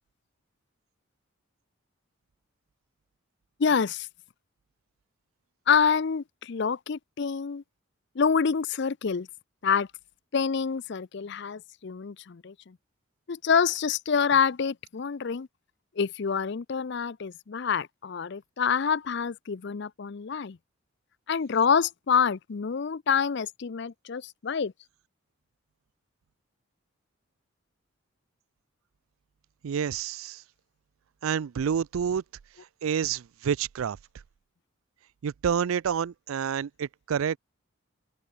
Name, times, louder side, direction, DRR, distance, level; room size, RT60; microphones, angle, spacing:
voice 1, 3.6-4.1 5.7-7.6 8.2-9.3 9.6-9.9 10.3-12.8 13.3-15.5 16.0-20.6 21.3-24.7, left 6 dB, 55° left, 0.5 m, -27 dB
voice 2, 29.6-30.4 31.2-32.2 32.8-34.0 35.2-37.4, right 7 dB, 75° right, 0.4 m, -28 dB
open air
head